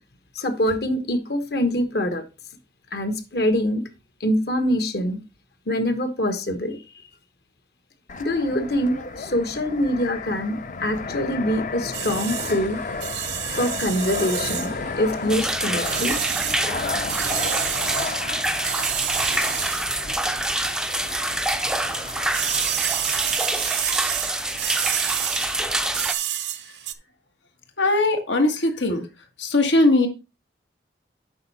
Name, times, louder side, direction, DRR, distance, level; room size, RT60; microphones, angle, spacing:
voice 1, 0.3-2.2 2.9-3.8 4.2-5.2 5.7-6.8 8.2-12.8 13.5-16.2, left 1 dB, 60° left, 1.2 m, -24 dB
Fixed-wing aircraft airplane, 8.1-23.4, left 4 dB, 45° left, 0.6 m, -33 dB
sound 1, 11.9-21.0 21.3-26.9, right 12 dB, 75° right, 0.7 m, -30 dB
sound 2, 15.3-26.1, right 1 dB, 5° right, 0.4 m, -26 dB
voice 2, 23.4-23.8 24.5-24.6 27.8-29.1 29.4-30.1, left 2 dB, 90° left, 1.7 m, -21 dB
7.9 x 5.5 x 4.1 m
head